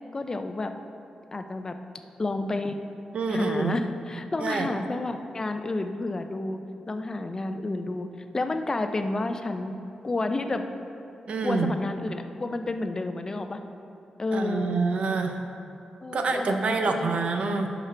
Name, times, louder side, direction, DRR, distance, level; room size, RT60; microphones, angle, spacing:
voice 1, 0.1-0.7 1.3-1.7 2.2-2.8 3.3-6.6 6.9-8.1 8.3-9.8 10.0-10.6 11.4-13.6 14.2-14.7 16.0-16.6 16.9-17.2 17.5-17.6, left 2 dB, 25° left, 7 dB, 0.4 m, -30 dB
voice 2, 3.1-3.8 4.4-4.7 11.3-11.7 14.3-15.4 16.1-17.7, right 4 dB, 55° right, 5 dB, 0.6 m, -26 dB
11.5 x 6.0 x 3.3 m, 2.6 s
wide cardioid pair, 130°, 2 cm